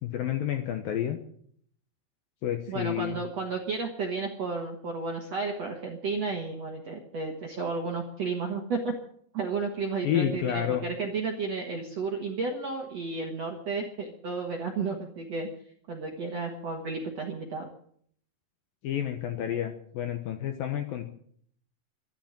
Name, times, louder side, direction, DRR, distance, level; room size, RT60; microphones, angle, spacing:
voice 1, 0.0-1.2 2.4-3.2 10.0-10.8 18.8-21.1, left 10 dB, 70° left, 5 dB, 2.3 m, -30 dB
voice 2, 2.7-8.9 9.3-15.5 15.9-17.7, right 4 dB, 60° right, 2 dB, 1.7 m, -32 dB
13.0 x 12.0 x 8.9 m, 0.63 s
omnidirectional pair, 5.3 m